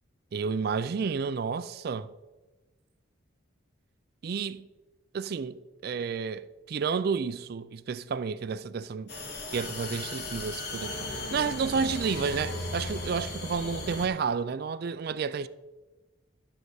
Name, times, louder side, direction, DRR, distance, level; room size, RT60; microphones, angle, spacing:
voice 1, 0.3-2.1 4.2-4.7 5.1-9.1 9.5-15.5, right 5 dB, 50° right, 0.3 m, -31 dB
sound 1, 9.1-14.1, left 2 dB, 55° left, 1.6 m, -36 dB
12.0 x 6.5 x 4.7 m
head